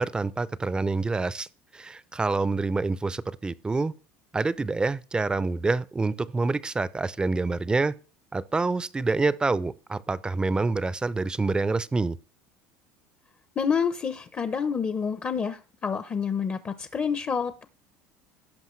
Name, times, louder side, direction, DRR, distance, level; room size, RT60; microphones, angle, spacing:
voice 1, 0.0-1.5 1.7-3.9 4.3-7.9 8.3-12.2, right 3 dB, 15° right, 0.5 m, -27 dB
voice 2, 13.6-17.6, left 6 dB, 30° left, 0.6 m, -28 dB
16.5 x 5.6 x 3.1 m
supercardioid pair, 115°, 6 cm